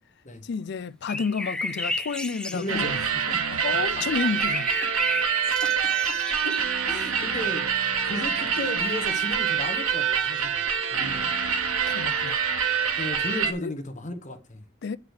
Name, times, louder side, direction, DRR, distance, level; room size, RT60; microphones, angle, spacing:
voice 1, 0.4-3.0 3.6-4.7 11.9-12.4 13.6-13.7 14.8-15.0, left 5 dB, 55° left, 0.4 m, -30 dB
sound 1, 1.1-3.0 4.1-6.9 7.7-7.8, left 2 dB, 5° left, 0.6 m, -33 dB
voice 2, 2.5-4.3 6.4-6.5 6.9-7.6 8.0-10.6 10.9-11.3 13.0-14.6, left 1 dB, 35° left, 1.2 m, -35 dB
sound 2, 2.7-13.5, right 7 dB, 90° right, 1.2 m, -26 dB
8.1 x 4.8 x 6.5 m
head